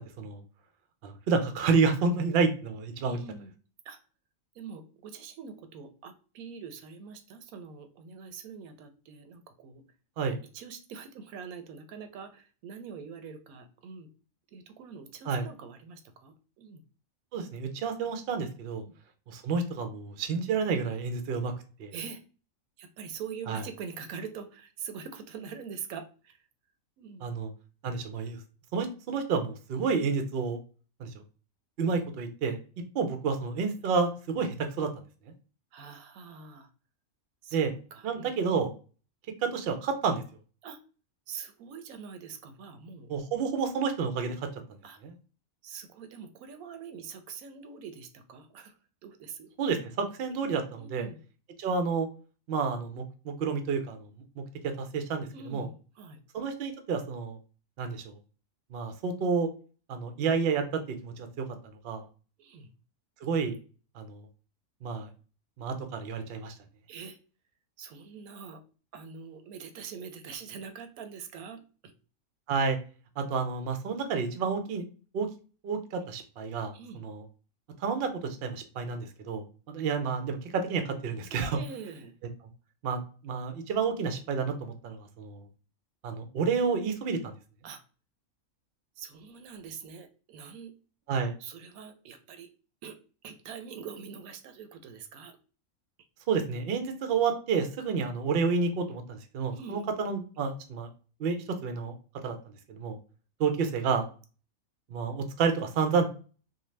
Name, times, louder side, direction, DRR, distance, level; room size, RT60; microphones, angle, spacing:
voice 1, 1.0-3.2 10.2-10.4 15.3-15.5 17.3-18.8 19.3-21.5 21.8-21.9 23.5-23.6 27.2-27.5 27.8-28.4 28.7-30.6 31.0-31.1 31.8-32.6 32.9-34.9 37.5-37.7 38.0-38.7 39.4-40.2 43.1-44.3 45.0-45.1 49.6-51.1 51.6-52.1 52.5-54.1 54.4-55.7 56.3-57.4 57.8-58.1 58.7-59.5 59.9-61.4 61.8-62.0 63.2-63.6 64.0-64.2 64.8-65.1 65.6-66.5 72.5-72.8 73.2-74.8 75.1-75.3 75.6-77.2 77.8-81.6 82.8-85.4 86.0-87.2 91.1-91.3 96.3-100.9 101.2-101.9 102.2-102.4 102.7-103.0 103.4-104.1 104.9-106.1, right 5 dB, 60° right, 7 dB, 0.6 m, -30 dB
voice 2, 3.0-3.5 3.8-4.0 4.5-9.8 10.5-14.1 14.5-16.8 18.8-18.9 21.9-22.2 22.8-26.4 27.0-27.3 35.7-36.7 37.4-37.6 37.9-38.3 40.6-40.8 41.3-43.1 44.8-45.0 45.6-48.7 49.0-49.5 50.8-51.2 55.3-56.2 62.4-62.7 66.9-67.2 67.8-68.6 68.9-71.9 76.7-77.0 81.5-82.2 87.6-87.8 89.0-90.7 91.4-92.5 92.8-93.0 93.2-95.4 99.5-99.9, right 6 dB, 85° right, 9 dB, 1.0 m, -44 dB
2.6 x 2.2 x 3.1 m, 0.36 s
omnidirectional pair, 1.4 m